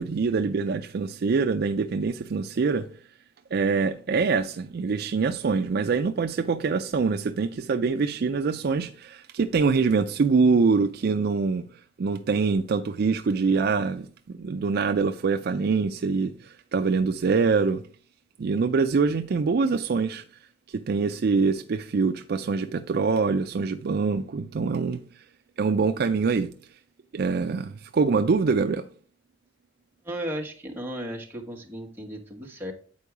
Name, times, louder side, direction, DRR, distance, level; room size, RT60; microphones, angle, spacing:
voice 1, 0.0-2.8 3.5-11.6 12.0-17.8 18.4-20.2 20.7-25.0 25.6-26.5 27.1-28.8, right 4 dB, 55° right, 0.4 m, -24 dB
voice 2, 30.0-32.7, equal, 10° right, 1.4 m, -35 dB
8.5 x 4.6 x 4.8 m
head